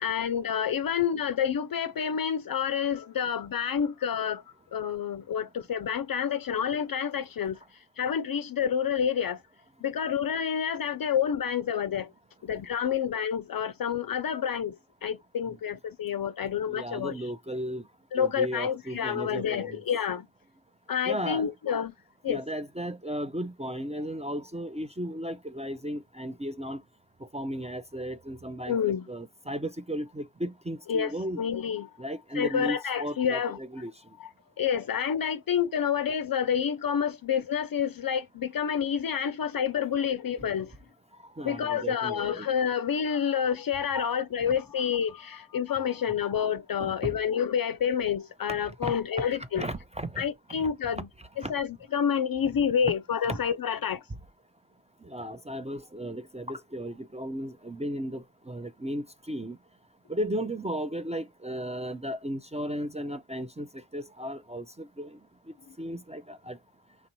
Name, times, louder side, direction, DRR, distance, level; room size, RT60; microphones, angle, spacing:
voice 1, 0.0-4.4 4.7-7.6 8.0-9.4 9.8-12.1 12.4-14.7 15.0-17.1 18.1-20.3 20.9-21.9 22.2-22.4 28.7-29.1 30.9-31.9 32.3-33.6 34.6-40.7 41.4-49.6 50.2-51.1 51.5-54.0, left 8 dB, 50° left, 0.4 m, -28 dB
voice 2, 16.7-17.8 18.2-19.8 21.1-21.5 22.3-26.8 27.3-31.4 32.0-33.9 41.4-42.5 43.9-44.1 44.4-44.5 46.8-47.1 48.6-48.9 49.4-50.3 50.6-50.7 51.4-51.5 52.8-52.9 53.2-53.4 55.0-59.6 60.1-65.1 65.8-66.6, equal, 15° right, 0.4 m, -35 dB
3.9 x 3.0 x 3.0 m
cardioid pair, 40°, 48 cm